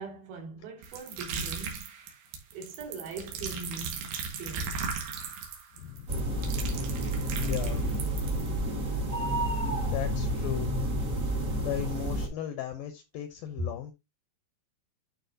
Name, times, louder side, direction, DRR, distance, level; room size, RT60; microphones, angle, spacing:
voice 1, 0.0-1.9 2.5-4.1 4.4-4.8 9.6-10.0 13.6-13.7, right 2 dB, 65° right, 4.0 m, -40 dB
sound 1, 0.8-8.5, right 5 dB, 90° right, 3.7 m, -37 dB
voice 2, 5.7-6.1 7.1-8.2 9.9-10.9 11.6-13.9, left 11 dB, 80° left, 2.1 m, -37 dB
sound 2, 6.1-12.3, right 1 dB, 50° right, 1.0 m, -30 dB
12.0 x 4.3 x 2.7 m
omnidirectional pair, 4.7 m